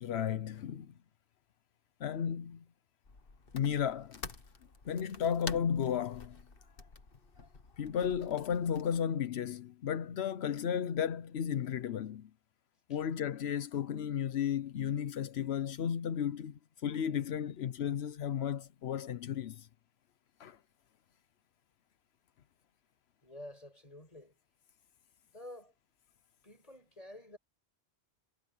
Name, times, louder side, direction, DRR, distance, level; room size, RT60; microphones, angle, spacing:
voice 1, 0.0-0.9 2.0-2.6 3.5-4.2 4.9-6.4 7.8-12.3 12.9-19.7 20.4-20.6, left 8 dB, 85° left, 1.0 m, -34 dB
sound 1, 3.0-9.0, left 4 dB, 60° left, 1.7 m, -49 dB
voice 2, 23.2-24.3 25.3-25.7 26.4-27.4, left 1 dB, 35° left, 7.0 m, -50 dB
omnidirectional pair, 1.1 m